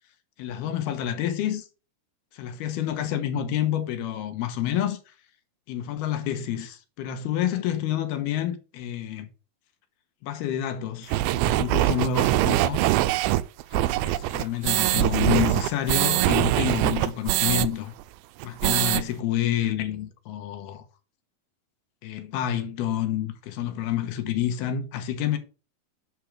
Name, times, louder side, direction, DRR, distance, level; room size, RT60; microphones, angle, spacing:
voice 1, 0.4-1.7 2.3-5.0 5.7-9.3 10.2-12.8 13.7-17.9 18.4-20.8 22.0-25.4, left 10 dB, 80° left, 3.2 m, -28 dB
sound 1, 11.1-17.7 18.0-18.1 18.4-19.0, right 15 dB, 80° right, 2.4 m, -23 dB
11.0 x 5.2 x 4.9 m
omnidirectional pair, 4.5 m